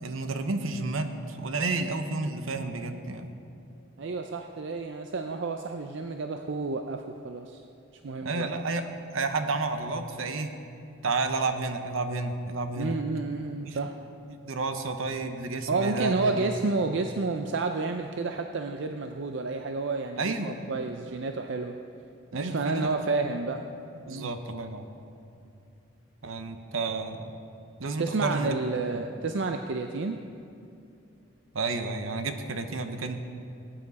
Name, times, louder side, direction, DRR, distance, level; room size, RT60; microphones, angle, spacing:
voice 1, 0.0-3.3 8.2-8.8 9.1-10.5 11.0-13.0 13.6-13.8 14.3-16.5 17.0-17.1 20.2-20.6 22.3-22.9 23.2-23.3 24.0-24.9 26.2-27.3 27.8-28.6 28.9-29.0 31.5-33.2, right 3 dB, 75° right, 7 dB, 0.9 m, -31 dB
voice 2, 4.0-7.6 8.0-8.6 12.8-13.9 15.7-21.8 22.3-23.7 24.1-24.3 28.0-30.2, right 3 dB, 60° right, 5 dB, 0.5 m, -30 dB
19.0 x 8.9 x 4.1 m, 2.6 s
head